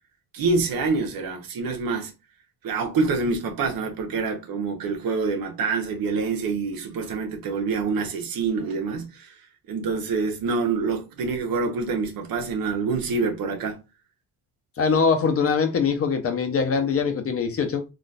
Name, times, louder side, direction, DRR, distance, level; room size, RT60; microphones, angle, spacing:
voice 1, 0.3-2.1 2.6-9.3 9.7-13.8, right 4 dB, 75° right, 0.9 m, -26 dB
voice 2, 14.8-17.8, left 5 dB, 40° left, 0.7 m, -22 dB
3.9 x 2.5 x 2.3 m
cardioid pair, 130°, 35 cm